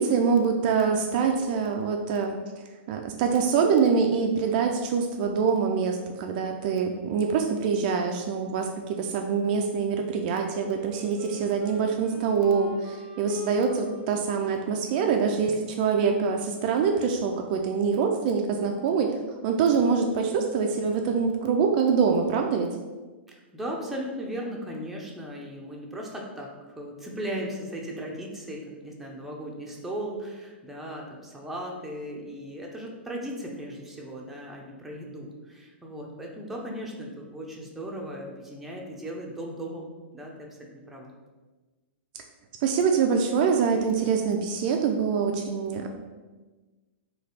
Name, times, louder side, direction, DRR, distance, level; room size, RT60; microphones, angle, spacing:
voice 1, 0.0-2.4 2.9-19.1 19.4-22.8 42.6-45.9, right 5 dB, 45° right, 3 dB, 0.3 m, -25 dB
Wind instrument woodwind instrument, 10.3-16.9, left 3 dB, 20° left, 1.2 m, -43 dB
voice 2, 23.3-41.1, equal, 5° right, -2 dB, 0.6 m, -37 dB
3.3 x 2.3 x 4.0 m, 1.3 s
hypercardioid pair, 130°, 7 cm